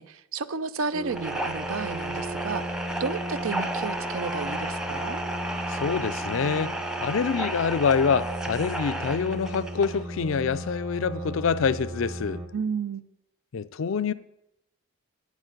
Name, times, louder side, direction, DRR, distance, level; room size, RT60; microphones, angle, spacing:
voice 1, 0.0-5.2 12.5-13.1, right 5 dB, 75° right, 0.5 m, -32 dB
sound 1, 0.9-12.5, right 1 dB, 25° right, 0.9 m, -36 dB
sound 2, 1.1-10.0, right 1 dB, 5° right, 0.5 m, -33 dB
voice 2, 5.7-12.4 13.5-14.1, left 6 dB, 65° left, 0.4 m, -26 dB
8.3 x 8.3 x 6.5 m
head